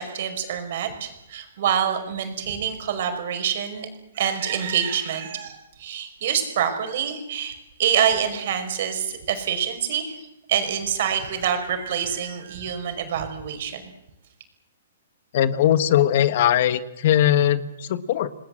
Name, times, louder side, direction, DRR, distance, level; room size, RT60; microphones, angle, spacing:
voice 1, 0.0-3.9 4.1-13.8, right 8 dB, 60° right, 7 dB, 5.2 m, -26 dB
voice 2, 15.3-18.3, left 11 dB, 55° left, 14 dB, 1.4 m, -20 dB
28.0 x 19.5 x 7.8 m, 0.90 s
hypercardioid pair, 140°, 0 cm